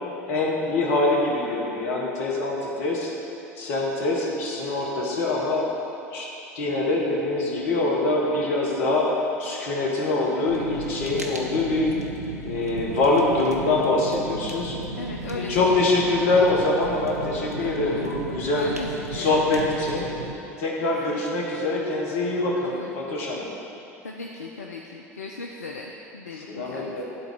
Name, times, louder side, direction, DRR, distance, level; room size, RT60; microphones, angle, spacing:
voice 1, 0.3-3.1 3.6-5.6 6.1-6.3 6.5-9.1 9.4-11.9 12.4-14.7 15.3-18.7 19.1-20.1 20.6-23.5 26.5-27.0, left 2 dB, 60° left, -2 dB, 1.3 m, -24 dB
Fire, 10.5-20.3, right 2 dB, 90° right, 0.6 m, -35 dB
voice 2, 15.0-16.3 17.6-18.1 18.5-19.6 20.8-21.2 22.6-22.9 24.0-27.0, left 3 dB, 80° left, 0 dB, 0.4 m, -37 dB
10.5 x 4.0 x 4.7 m, 2.8 s
figure-of-eight pair, 75°, 8 cm